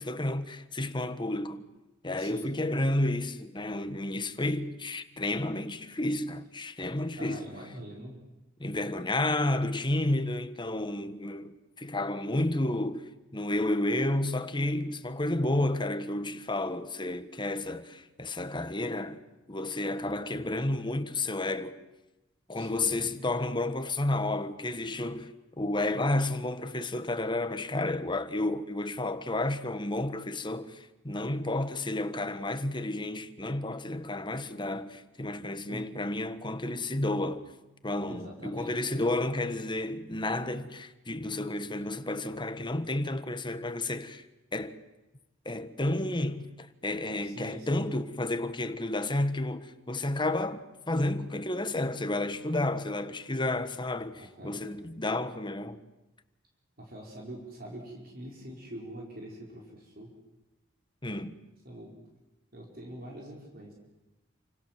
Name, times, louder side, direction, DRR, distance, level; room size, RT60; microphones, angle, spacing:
voice 1, 0.0-1.6 2.0-7.4 8.6-19.2 19.5-21.8 22.5-25.3 25.6-37.5 37.8-44.2 44.5-44.7 45.4-55.8 61.0-61.4, left 2 dB, 25° left, 1.4 m, -31 dB
voice 2, 2.1-2.5 7.2-8.2 22.5-23.2 35.7-35.9 38.1-38.9 47.2-47.9 54.2-54.6 56.8-60.1 61.6-62.0 62.5-63.7, right 1 dB, 50° right, 4.9 m, -44 dB
28.5 x 27.0 x 7.5 m
head